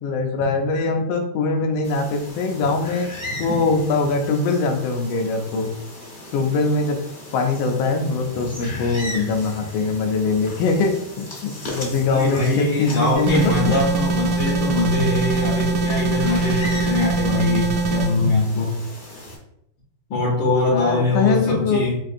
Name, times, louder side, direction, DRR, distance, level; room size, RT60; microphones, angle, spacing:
voice 1, 0.0-3.1 3.4-5.7 6.3-7.0 7.3-13.8 20.7-21.8, left 4 dB, 85° left, 3 dB, 1.4 m, -22 dB
sound 1, 1.8-19.4, left 1 dB, 45° left, 0.6 m, -36 dB
voice 2, 12.1-18.8 20.1-22.0, left 2 dB, 70° left, -3 dB, 1.4 m, -22 dB
sound 2, 13.3-18.1, right 4 dB, 75° right, 1.0 m, -22 dB
4.7 x 2.5 x 2.5 m, 0.76 s
omnidirectional pair, 2.2 m